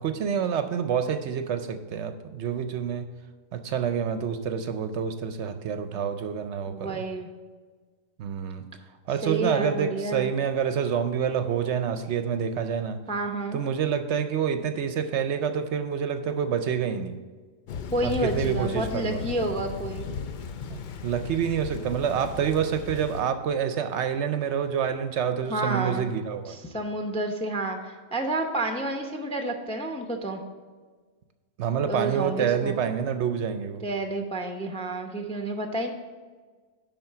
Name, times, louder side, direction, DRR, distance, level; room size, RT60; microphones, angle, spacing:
voice 1, 0.0-3.1 3.5-7.0 8.2-8.7 9.1-13.0 13.5-17.2 18.0-19.2 20.7-26.6 31.6-33.9, right 7 dB, 65° right, 9 dB, 0.8 m, -27 dB
voice 2, 6.7-7.3 9.2-10.3 13.1-13.6 17.9-20.1 25.5-26.1 26.5-30.4 31.9-32.8 33.8-35.9, right 2 dB, 5° left, 4 dB, 0.4 m, -30 dB
Thunder / Rain, 17.7-23.2, left 6 dB, 65° left, 0.4 m, -36 dB
10.5 x 3.8 x 6.6 m, 1.4 s
omnidirectional pair, 1.4 m